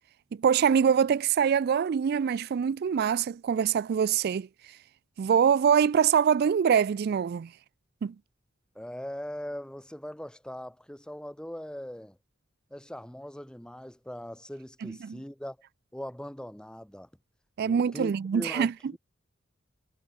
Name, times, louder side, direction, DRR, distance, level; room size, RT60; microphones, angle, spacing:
voice 1, 0.4-4.5 5.2-7.5 8.0-8.1 14.8-15.1 17.6-18.7, right 7 dB, 55° right, 0.3 m, -24 dB
voice 2, 8.7-12.2 12.7-15.6 15.9-17.1 17.6-19.0, equal, 5° left, 0.9 m, -40 dB
head